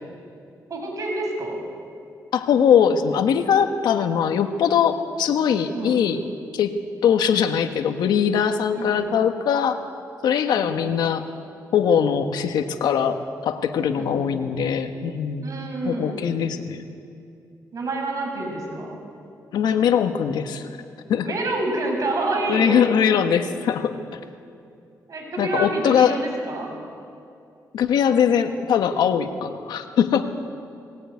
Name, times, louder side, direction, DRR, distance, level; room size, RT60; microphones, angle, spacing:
voice 1, 0.7-1.6 5.7-6.0 8.7-9.0 10.5-10.7 14.0-14.3 15.4-16.2 17.7-19.0 21.2-22.8 25.1-26.7, right 2 dB, 50° right, 1 dB, 6.9 m, -28 dB
voice 2, 2.3-6.2 6.5-9.8 10.2-11.3 11.7-15.5 15.8-16.8 19.5-20.7 21.1-21.3 22.5-24.2 25.4-26.2 27.7-30.3, left 8 dB, 90° left, 7 dB, 1.5 m, -21 dB
20.0 x 20.0 x 9.6 m, 2.5 s
cardioid pair, 95°, 7 cm